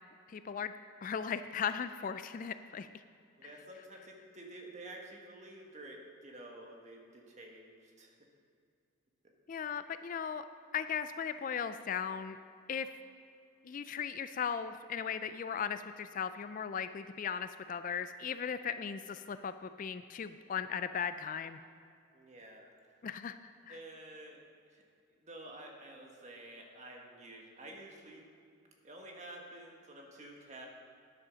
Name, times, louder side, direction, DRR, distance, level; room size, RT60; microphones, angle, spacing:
voice 1, 0.3-0.7 1.0-2.9 9.5-10.4 10.7-12.4 12.7-12.9 13.6-21.6 23.0-23.4 23.7-23.8, left 7 dB, 40° left, 11 dB, 0.3 m, -37 dB
voice 2, 3.4-8.1 9.2-9.3 22.1-22.9 23.7-24.4 24.7-24.8 25.2-28.3 28.8-30.7, right 1 dB, 35° right, 1 dB, 1.5 m, -50 dB
10.0 x 8.5 x 6.3 m, 2.4 s
head